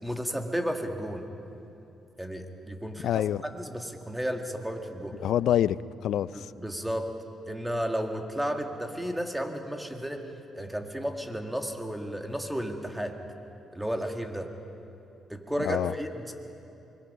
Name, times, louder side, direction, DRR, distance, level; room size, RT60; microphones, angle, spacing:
voice 1, 0.0-1.2 2.2-5.2 6.3-7.1 7.5-10.2 10.5-13.2 13.7-14.5 15.3-16.3, equal, 5° right, 4 dB, 1.9 m, -33 dB
voice 2, 3.0-3.4 5.2-6.5 15.6-15.9, left 11 dB, 75° left, 18 dB, 0.4 m, -26 dB
24.0 x 21.5 x 5.5 m, 2.8 s
cardioid pair, 90°, 0 cm